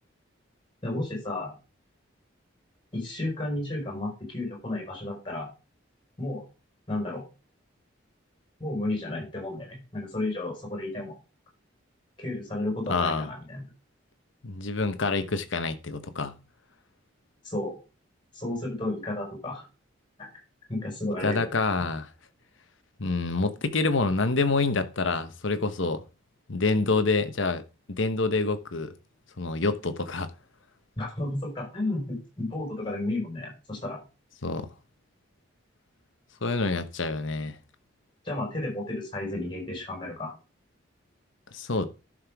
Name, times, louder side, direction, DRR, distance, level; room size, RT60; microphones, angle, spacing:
voice 1, 0.8-1.5 2.9-5.5 6.2-6.5 6.9-7.2 8.6-11.1 12.2-13.6 17.4-17.8 18.3-19.7 20.2-20.3 20.7-21.4 31.0-34.0 38.2-40.3, left 2 dB, 25° left, 5.2 m, -32 dB
voice 2, 12.9-13.3 14.4-16.4 21.2-22.1 23.0-26.0 26.5-27.6 27.9-28.9 29.4-30.3 34.4-34.7 36.4-37.6 41.5-41.8, left 3 dB, 70° left, 1.1 m, -27 dB
11.5 x 6.6 x 3.6 m
head